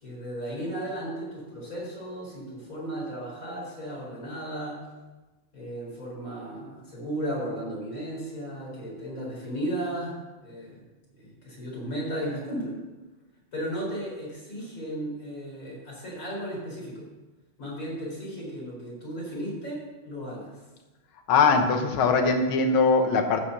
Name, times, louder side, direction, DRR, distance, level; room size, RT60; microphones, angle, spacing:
voice 1, 0.0-4.8 5.5-10.2 10.4-10.8 11.1-12.8 13.5-17.1 17.6-20.5, right 1 dB, 35° left, -4 dB, 4.6 m, -35 dB
voice 2, 21.3-23.4, left 4 dB, 70° left, 5 dB, 1.9 m, -21 dB
14.5 x 5.3 x 6.6 m, 1.2 s
omnidirectional pair, 2.4 m